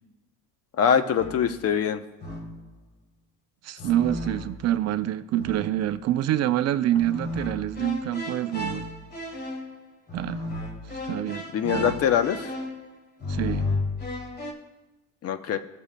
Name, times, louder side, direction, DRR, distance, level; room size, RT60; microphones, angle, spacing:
voice 1, 0.8-2.0 11.5-12.5 15.2-15.6, left 8 dB, 40° left, 0.8 m, -23 dB
sound 1, 1.2-1.7 2.2-2.8 3.8-4.8 5.4-5.9 6.9-14.5, left 2 dB, 25° left, 1.8 m, -34 dB
voice 2, 3.6-8.9 10.1-10.4 11.0-11.9 13.3-13.7, right 12 dB, 45° right, 0.5 m, -26 dB
16.5 x 6.9 x 2.2 m
supercardioid pair, 90°, 36 cm